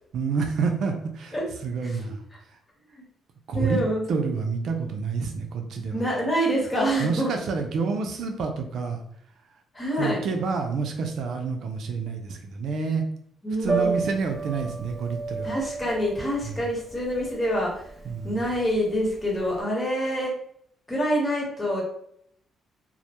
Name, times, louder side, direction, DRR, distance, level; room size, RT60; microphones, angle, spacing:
voice 1, 0.1-2.2 3.5-3.8 4.1-6.0 7.0-9.0 10.0-13.1 13.6-15.5 16.4-16.6 18.0-18.3, right 5 dB, 70° right, 4 dB, 0.4 m, -28 dB
voice 2, 3.5-4.0 5.9-7.3 9.7-10.2 13.4-13.9 15.4-17.7 18.2-20.3 20.9-21.8, equal, 20° left, -3 dB, 1.1 m, -26 dB
Piano, 13.6-19.6, right 3 dB, 15° right, 0.7 m, -32 dB
2.1 x 2.1 x 2.9 m, 0.68 s
cardioid pair, 90°, 0 cm